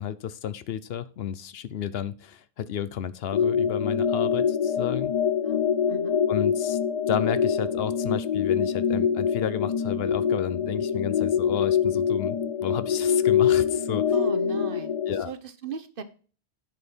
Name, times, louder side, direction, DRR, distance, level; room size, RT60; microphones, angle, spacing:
voice 1, 0.0-5.1 6.3-6.8 7.1-14.0 15.1-15.3, left 9 dB, 70° left, 0.8 m, -32 dB
sound 1, 3.3-15.2, left 7 dB, 45° left, 0.4 m, -25 dB
voice 2, 5.9-6.2 14.1-15.0 15.3-16.0, right 5 dB, 60° right, 1.0 m, -37 dB
10.5 x 5.4 x 4.4 m
omnidirectional pair, 1.1 m